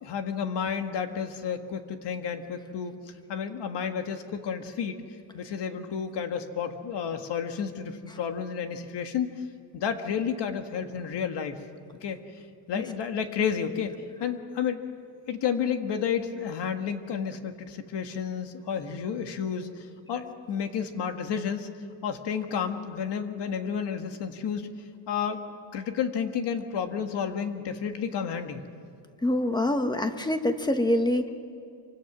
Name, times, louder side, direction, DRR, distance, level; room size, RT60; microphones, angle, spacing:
voice 1, 0.0-2.9 3.3-4.9 5.3-9.3 9.7-11.6 12.0-12.2 12.7-13.9 14.2-14.8 15.3-21.7 22.0-24.7 25.1-25.4 25.7-28.6, left 7 dB, 60° left, 7 dB, 1.7 m, -31 dB
voice 2, 29.2-31.3, left 1 dB, 10° left, 7 dB, 1.2 m, -25 dB
26.5 x 25.0 x 6.1 m, 2.4 s
cardioid pair, 170°, 47 cm